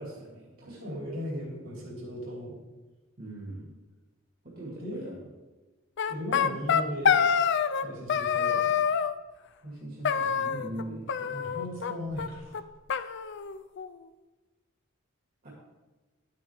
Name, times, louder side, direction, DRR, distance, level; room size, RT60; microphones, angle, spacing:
voice 1, 0.0-0.8 3.2-3.7 4.4-5.2 9.6-11.3 15.4-15.5, right 1 dB, 45° right, -5 dB, 1.9 m, -41 dB
voice 2, 0.6-2.6 4.8-5.1 6.1-7.3 7.8-8.8 10.5-10.9 11.3-12.6, equal, 65° right, -2 dB, 3.3 m, -37 dB
sound 1, 6.0-7.8 8.1-9.1 10.0-10.8 11.1-11.9 12.2-12.3 12.5-12.6 12.9-13.9, left 7 dB, 55° left, 0.4 m, -26 dB
11.0 x 8.6 x 3.5 m, 1.2 s
head